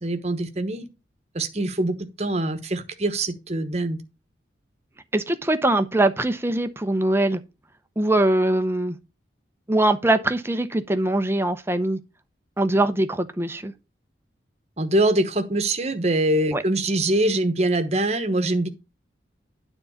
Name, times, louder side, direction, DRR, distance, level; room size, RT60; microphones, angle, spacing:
voice 1, 0.0-0.9 1.3-4.0 14.8-18.7, right 1 dB, 35° right, 1.1 m, -23 dB
voice 2, 5.1-7.4 8.0-9.0 9.7-12.0 12.6-13.7 16.5-16.6, right 1 dB, 15° right, 0.7 m, -22 dB
9.6 x 3.9 x 7.0 m
head